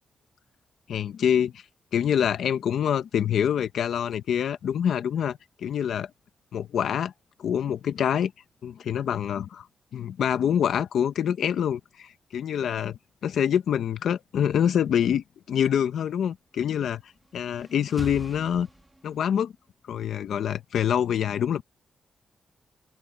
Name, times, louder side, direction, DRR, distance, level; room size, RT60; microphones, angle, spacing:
voice 1, 0.9-1.6 1.9-6.1 6.5-7.1 7.4-8.3 8.6-9.7 9.9-17.0 17.3-18.7 19.0-19.5 19.9-21.6, left 9 dB, 75° left, 1.0 m, -26 dB
sound 1, 17.0-19.4, right 1 dB, 5° right, 2.1 m, -42 dB
open air
wide cardioid pair, 170°, 0 cm